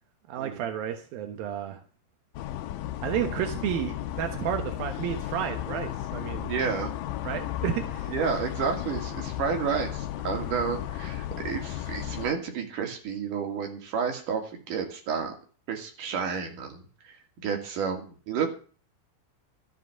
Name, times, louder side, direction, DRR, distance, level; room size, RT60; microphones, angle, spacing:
voice 1, 0.3-1.8 3.0-6.5 7.2-8.1, right 10 dB, 90° right, 6 dB, 3.1 m, -31 dB
sound 1, 2.4-12.3, left 13 dB, 80° left, 2.4 m, -34 dB
voice 2, 6.4-6.9 8.1-15.3 15.7-18.5, right 6 dB, 65° right, 3 dB, 4.1 m, -31 dB
13.5 x 7.6 x 7.6 m, 0.39 s
omnidirectional pair, 4.0 m